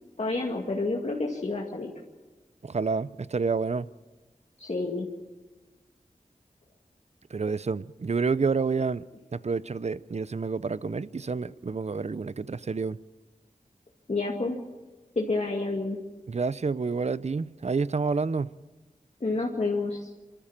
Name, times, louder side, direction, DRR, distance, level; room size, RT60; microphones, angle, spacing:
voice 1, 0.2-1.9 4.6-5.1 14.1-14.6 15.2-16.0 19.2-20.1, left 3 dB, 55° left, 2.2 m, -29 dB
voice 2, 2.6-3.9 7.3-9.0 9.3-13.0 16.3-18.5, right 4 dB, 55° right, 0.6 m, -29 dB
27.0 x 13.5 x 7.3 m
wide cardioid pair, 75°, 14 cm